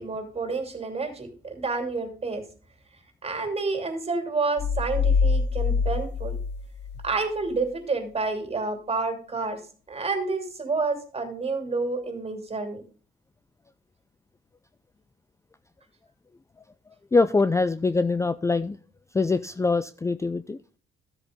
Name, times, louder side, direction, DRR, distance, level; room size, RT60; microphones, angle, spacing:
voice 1, 0.0-2.4 3.2-6.4 7.0-9.6 9.9-12.8, right 3 dB, 30° right, 6 dB, 2.8 m, -29 dB
sound 1, 4.6-7.2, left 5 dB, 60° left, 0.7 m, -25 dB
voice 2, 17.1-18.8 19.1-20.6, left 3 dB, 15° left, 14 dB, 0.4 m, -23 dB
13.0 x 8.0 x 3.7 m, 0.39 s
cardioid pair, 90°, 20 cm